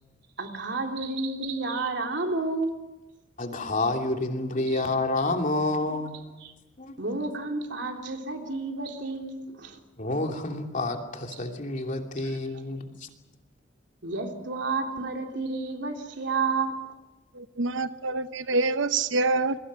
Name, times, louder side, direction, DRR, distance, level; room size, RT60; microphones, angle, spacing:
voice 1, 0.4-2.8 4.7-4.8 6.4-6.5 7.0-9.8 11.3-11.4 12.2-12.4 14.0-16.7, right 3 dB, 65° right, 3 dB, 3.5 m, -31 dB
voice 2, 3.4-6.1 6.8-6.9 10.0-12.9, left 2 dB, 45° left, 3 dB, 2.9 m, -28 dB
voice 3, 17.3-19.6, right 3 dB, 85° right, 11 dB, 0.9 m, -26 dB
28.5 x 22.0 x 6.4 m, 1.0 s
head